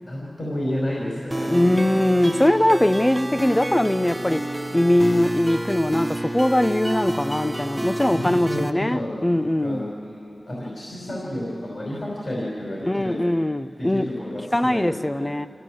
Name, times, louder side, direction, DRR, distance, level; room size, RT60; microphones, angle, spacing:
voice 1, 0.0-1.7 7.9-9.3 9.6-13.2 13.8-15.2, left 1 dB, 55° left, -5 dB, 5.3 m, -31 dB
sound 1, 1.3-8.7, right 1 dB, 15° right, 1.0 m, -29 dB
voice 2, 1.5-4.4 4.7-9.9 12.8-14.1 14.5-15.5, left 1 dB, 20° left, 11 dB, 0.6 m, -21 dB
26.5 x 16.0 x 7.8 m, 2.6 s
wide cardioid pair, 55°, 0 cm